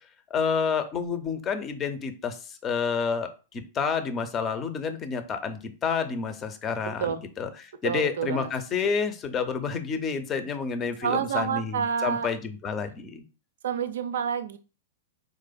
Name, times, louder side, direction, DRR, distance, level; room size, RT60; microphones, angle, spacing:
voice 1, 0.3-13.2, left 6 dB, 25° left, 9 dB, 0.5 m, -29 dB
voice 2, 7.8-8.5 11.0-12.3 13.6-14.6, right 7 dB, 65° right, 10 dB, 0.4 m, -28 dB
4.0 x 2.4 x 2.2 m, 0.34 s
figure-of-eight pair, 100°, 0 cm